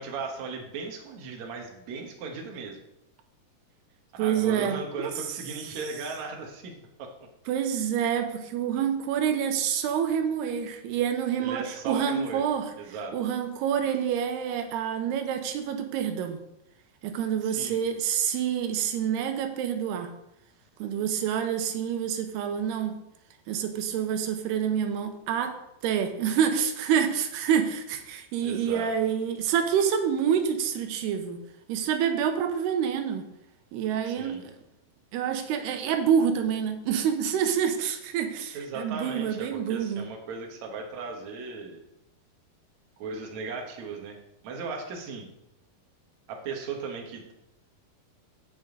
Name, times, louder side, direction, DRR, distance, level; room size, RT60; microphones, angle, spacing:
voice 1, 0.0-2.8 4.2-6.7 7.0-7.1 11.4-12.4 12.8-13.1 17.4-17.8 28.4-28.9 34.0-34.4 38.5-41.8 43.0-44.2 44.4-45.3 46.3-47.3, right 4 dB, 55° right, 1 dB, 2.4 m, -37 dB
voice 2, 4.2-5.1 7.5-12.7 13.1-16.4 17.0-20.1 20.8-23.0 23.5-25.5 25.8-31.4 31.7-33.3 33.7-34.6 35.1-40.1, right 8 dB, 90° right, 6 dB, 3.0 m, -27 dB
16.5 x 5.4 x 3.9 m, 0.83 s
omnidirectional pair, 4.5 m